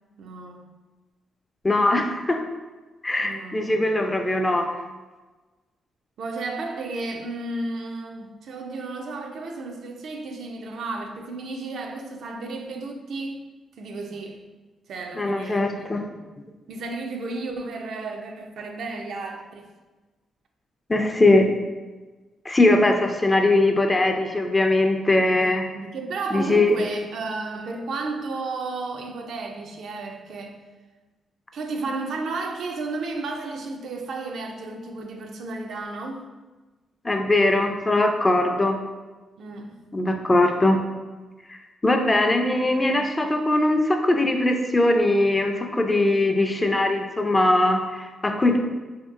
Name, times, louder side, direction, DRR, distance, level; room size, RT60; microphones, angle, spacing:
voice 1, 0.2-0.7 3.2-3.8 6.2-13.4 13.8-14.4 14.9-16.0 16.7-19.7 22.8-23.1 25.4-30.6 31.5-36.2 39.4-39.8 42.4-43.0, right 3 dB, 75° right, 3 dB, 0.3 m, -33 dB
voice 2, 1.6-2.4 3.0-4.7 15.2-16.1 20.9-21.5 22.5-25.7 26.3-26.8 37.0-38.8 39.9-40.8 41.5-41.6 41.8-48.6, left 2 dB, 25° left, 4 dB, 0.3 m, -21 dB
2.8 x 2.7 x 2.4 m, 1.2 s
cardioid pair, 75°, 0 cm